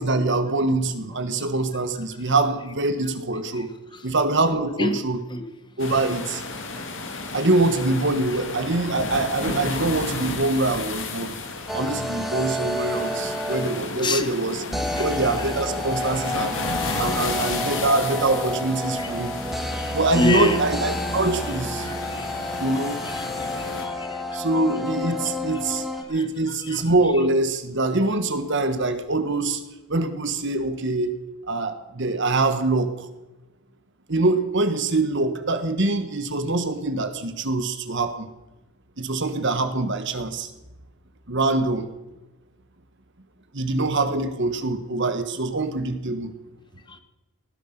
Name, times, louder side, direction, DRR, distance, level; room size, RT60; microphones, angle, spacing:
voice 1, 0.0-3.7 4.0-5.2 5.8-6.4 7.3-11.4 11.7-16.6 17.0-19.4 19.9-21.9 22.6-23.0 24.3-29.6 29.9-31.2 31.5-33.1 34.1-38.3 39.0-40.5 41.3-41.9 43.5-46.3, right 2 dB, 55° right, 9 dB, 1.4 m, -24 dB
voice 2, 3.5-4.1 4.4-5.0 5.3-5.5 6.8-6.9 8.3-8.4 14.0-14.3 14.8-15.6 16.0-16.3 17.1-17.9 19.0-19.2 19.7-20.6 21.8-24.4 25.5-26.9 46.9-47.0, left 2 dB, 20° left, 10 dB, 0.8 m, -31 dB
sound 1, 5.8-23.9, left 3 dB, 55° left, 2.1 m, -33 dB
sound 2, 11.7-14.0 14.7-26.0, left 1 dB, ahead, 1.3 m, -30 dB
19.0 x 12.5 x 5.9 m, 1.0 s
head